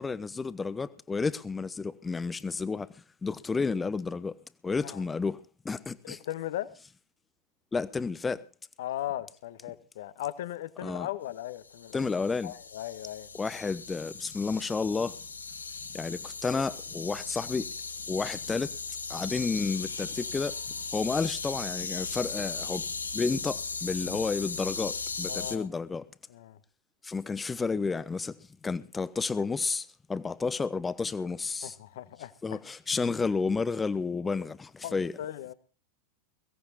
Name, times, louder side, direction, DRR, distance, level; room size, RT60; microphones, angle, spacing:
voice 1, 0.0-4.3 4.6-5.4 5.6-6.2 7.7-8.4 10.8-11.1 11.9-12.5 13.4-15.2 15.9-17.7 18.1-18.7 19.1-20.6 20.9-22.9 23.1-26.0 27.0-28.4 28.6-31.7 32.4-35.1, left 4 dB, 15° left, 1.0 m, -31 dB
voice 2, 6.0-6.7 8.8-12.1 12.4-13.3 25.3-25.7 26.3-26.6 31.6-32.6 34.8-35.5, left 13 dB, 55° left, 1.3 m, -38 dB
sound 1, 11.6-25.6, left 4 dB, 75° left, 1.5 m, -37 dB
22.0 x 17.0 x 2.7 m
figure-of-eight pair, 90°, 0 cm